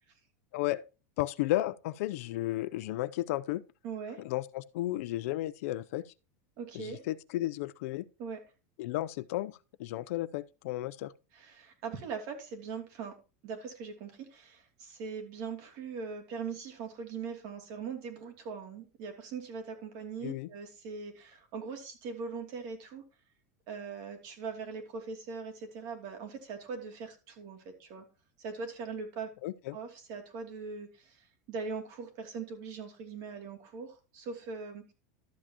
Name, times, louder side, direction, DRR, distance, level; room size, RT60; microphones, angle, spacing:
voice 1, 0.5-0.8 1.2-3.6 4.2-6.0 6.7-8.1 8.8-11.1 20.2-20.5 29.4-29.8, left 16 dB, 70° left, 0.6 m, -33 dB
voice 2, 3.8-4.2 6.6-7.0 8.2-8.4 11.3-13.1 13.4-23.0 23.7-28.0 28.4-29.3 29.7-34.8, right 5 dB, 50° right, 2.8 m, -41 dB
12.5 x 7.5 x 3.0 m
supercardioid pair, 150°, 8 cm